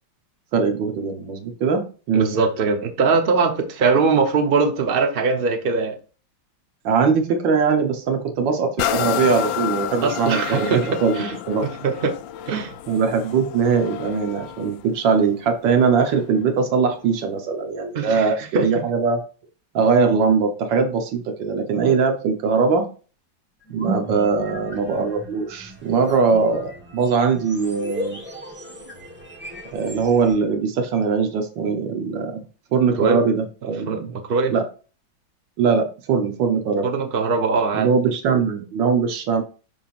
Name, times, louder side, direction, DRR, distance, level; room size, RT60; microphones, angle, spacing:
voice 1, 0.5-2.3 6.8-11.7 12.9-19.2 19.7-22.8 23.7-28.2 29.7-32.4 32.7-34.1 34.5-34.6 35.6-36.9 37.7-39.4, right 5 dB, 75° right, 1.8 m, -21 dB
voice 2, 2.1-6.0 10.0-10.9 11.1-12.1 12.5-12.8 17.9-18.8 33.0-33.2 33.9-34.5 36.8-37.9, right 4 dB, 40° right, 0.9 m, -21 dB
sound 1, 8.8-16.4 17.0-17.1, left 11 dB, 80° left, 1.3 m, -30 dB
sound 2, 23.6-30.3, right 1 dB, 5° right, 1.3 m, -35 dB
11.0 x 3.7 x 2.5 m
omnidirectional pair, 2.1 m